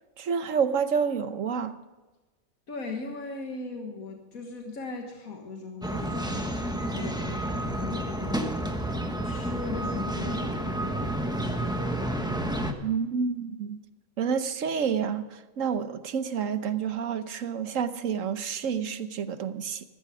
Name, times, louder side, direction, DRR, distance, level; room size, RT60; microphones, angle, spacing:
voice 1, 0.2-1.8 12.8-13.8 14.2-19.8, right 6 dB, 70° right, 11 dB, 1.3 m, -29 dB
voice 2, 2.7-12.7, left 4 dB, 90° left, 2 dB, 1.9 m, -39 dB
sound 1, 5.8-12.7, right 1 dB, 5° right, 1.1 m, -30 dB
15.5 x 14.0 x 4.9 m, 1.2 s
omnidirectional pair, 1.4 m